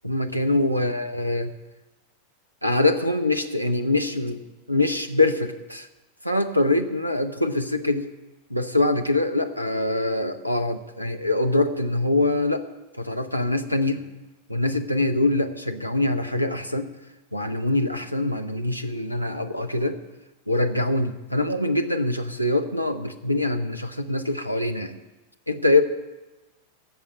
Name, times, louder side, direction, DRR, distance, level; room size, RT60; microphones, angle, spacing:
voice 1, 0.0-1.5 2.6-4.4 4.7-5.9 6.2-8.1 8.5-12.6 13.0-14.0 14.5-16.9 17.3-20.0 20.5-25.0 25.5-25.8, left 2 dB, 90° left, 7 dB, 0.7 m, -24 dB
13.0 x 7.0 x 8.6 m, 1.1 s
figure-of-eight pair, 90°, 0 cm